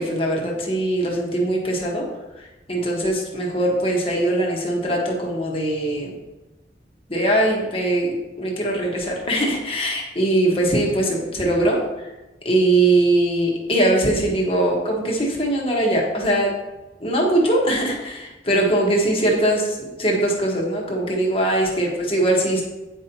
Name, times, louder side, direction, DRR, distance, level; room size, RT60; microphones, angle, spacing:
voice 1, 0.0-2.0 2.7-6.1 7.1-8.1 8.4-11.8 12.4-16.5 17.0-22.6, right 1 dB, 30° left, -1 dB, 1.3 m, -21 dB
9.1 x 5.3 x 2.9 m, 1.1 s
head